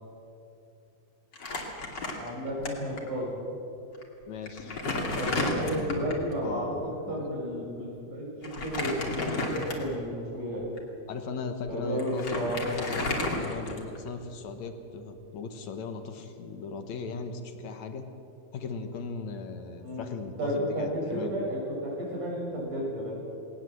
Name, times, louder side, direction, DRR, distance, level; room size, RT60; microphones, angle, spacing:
Crumpling crinkling, 1.3-2.7 3.0-3.1 3.9-4.0 4.5-6.3 8.4-10.0 10.6-10.8 11.7-11.8 12.0-14.1, left 2 dB, 35° left, 2.9 m, -32 dB
voice 1, 2.2-3.4 5.1-10.7 11.7-12.8 19.8-20.1 20.4-23.1, equal, 80° right, -4 dB, 8.2 m, -32 dB
voice 2, 4.2-4.8 6.4-7.4 11.1-12.4 12.7-18.1 18.5-21.4, left 4 dB, 65° left, 7 dB, 2.4 m, -38 dB
19.5 x 19.0 x 7.7 m, 2.8 s
omnidirectional pair, 3.6 m